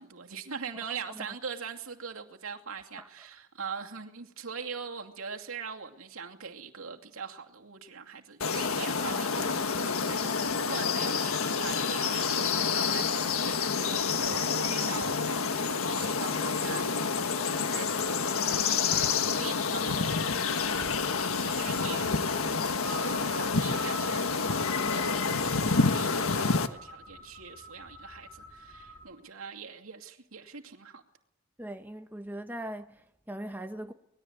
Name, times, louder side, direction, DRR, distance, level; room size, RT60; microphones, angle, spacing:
voice 1, 0.0-20.8 21.4-22.2 22.4-24.3 24.6-31.0, right 6 dB, 80° right, 2.6 m, -42 dB
sound 1, 8.4-26.7, left 5 dB, 85° left, 1.5 m, -28 dB
sound 2, 20.6-29.0, equal, 10° left, 4.5 m, -46 dB
voice 2, 31.6-33.9, right 1 dB, 10° right, 1.1 m, -40 dB
25.0 x 20.5 x 8.1 m
head